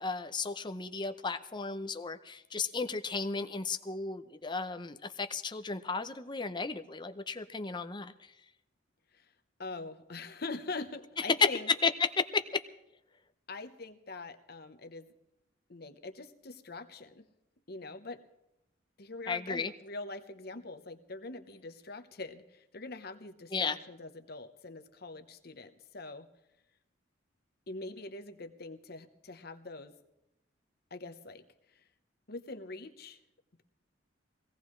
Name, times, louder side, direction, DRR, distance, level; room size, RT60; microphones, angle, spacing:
voice 1, 0.0-8.3 11.2-11.5 11.8-12.6 19.3-19.7 23.5-23.8, left 4 dB, 25° left, 9 dB, 0.7 m, -33 dB
voice 2, 9.6-11.7 13.5-15.1 15.7-17.3 17.7-18.2 19.0-26.3 27.7-29.9 30.9-31.4 32.3-33.2, left 3 dB, 55° left, 7 dB, 1.0 m, -43 dB
22.0 x 17.5 x 3.2 m, 0.90 s
head